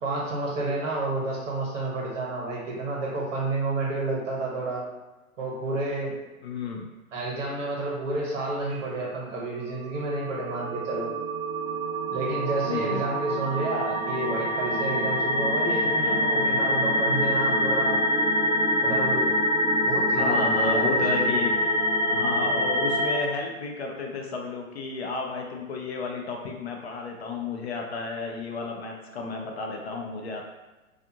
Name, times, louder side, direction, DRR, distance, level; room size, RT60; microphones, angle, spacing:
voice 1, 0.0-4.8 5.4-6.1 7.1-11.1 12.1-18.0 18.8-19.2 19.9-21.3, right 2 dB, 60° right, -3 dB, 1.1 m, -30 dB
voice 2, 6.4-6.9 12.7-13.0 16.0-16.2 20.1-21.5 22.1-30.4, left 4 dB, 50° left, 1 dB, 0.5 m, -32 dB
sound 1, 9.9-23.2, equal, 75° right, 0.6 m, -25 dB
2.5 x 2.4 x 2.7 m, 1.1 s
figure-of-eight pair, 120°, 43 cm